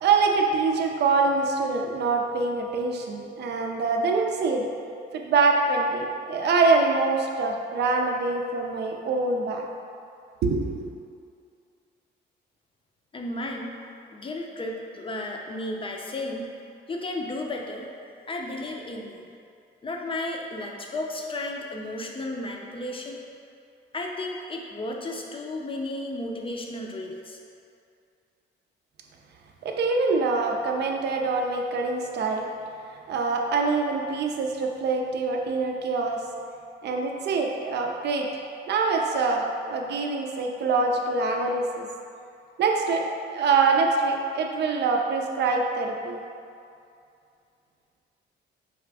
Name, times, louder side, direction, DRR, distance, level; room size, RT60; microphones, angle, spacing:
voice 1, 0.0-4.7 5.1-9.7 10.4-10.9 29.6-32.5 33.1-36.2 36.8-38.4 38.7-41.9 42.6-46.2, right 4 dB, 60° right, 2 dB, 0.5 m, -24 dB
voice 2, 13.1-13.7 14.1-16.5 16.9-17.9 18.3-19.2 19.8-23.2 23.9-27.4, left 1 dB, 25° left, 0 dB, 0.5 m, -33 dB
4.8 x 2.5 x 3.3 m, 2.5 s
cardioid pair, 90°, 20 cm